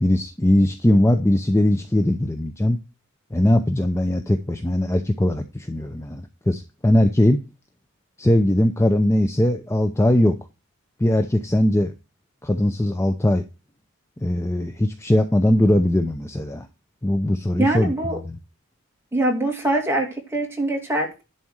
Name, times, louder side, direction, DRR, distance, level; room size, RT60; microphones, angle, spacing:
voice 1, 0.0-2.8 3.3-7.4 8.2-10.4 11.0-11.9 12.4-13.4 14.2-16.7 17.0-18.4, left 1 dB, 10° left, 7 dB, 0.6 m, -20 dB
voice 2, 17.6-18.2 19.1-21.2, right 1 dB, 10° right, 0 dB, 2.6 m, -23 dB
11.0 x 4.2 x 6.3 m, 0.29 s
head